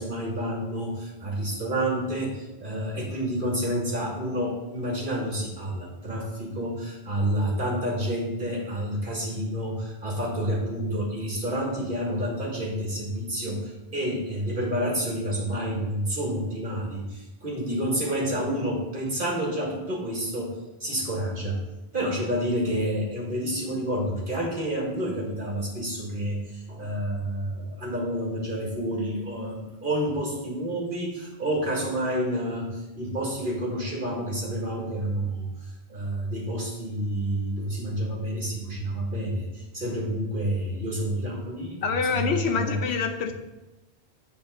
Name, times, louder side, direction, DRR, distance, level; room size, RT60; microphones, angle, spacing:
voice 1, 0.0-20.6 20.8-21.6 21.9-35.5 35.9-41.8 42.1-42.8, right 1 dB, 55° right, -2 dB, 2.0 m, -29 dB
voice 2, 41.8-43.3, left 5 dB, 85° left, 5 dB, 1.1 m, -26 dB
8.4 x 4.1 x 6.5 m, 1.1 s
omnidirectional pair, 1.1 m